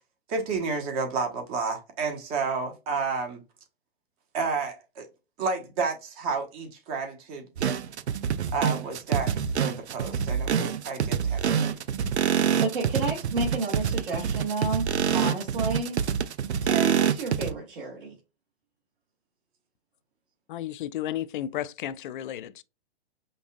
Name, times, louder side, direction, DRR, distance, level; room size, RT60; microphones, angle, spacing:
voice 1, 0.3-3.4 4.3-5.1 5.4-7.8 8.5-11.8, right 4 dB, 35° right, 1.2 m, -31 dB
sound 1, 7.6-17.5, right 8 dB, 80° right, 0.5 m, -26 dB
voice 2, 12.6-14.9 15.1-16.1 16.6-18.1, right 3 dB, 55° right, 1.6 m, -30 dB
voice 3, 20.5-22.6, left 12 dB, 50° left, 0.4 m, -33 dB
5.2 x 2.4 x 2.2 m
hypercardioid pair, 125°, 33 cm